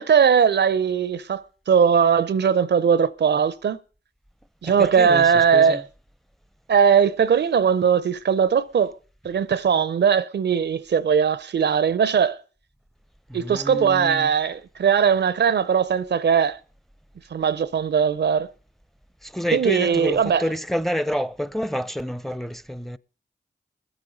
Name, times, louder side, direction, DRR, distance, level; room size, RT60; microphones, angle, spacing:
voice 1, 0.0-3.8 4.6-5.8 6.7-9.0 9.2-12.4 13.3-16.6 17.3-18.5 19.5-20.5, right 7 dB, 75° right, 0.6 m, -19 dB
voice 2, 4.6-5.8 13.3-14.3 19.2-23.0, equal, ahead, 0.6 m, -28 dB
20.5 x 8.1 x 5.3 m
cardioid pair, 45°, 18 cm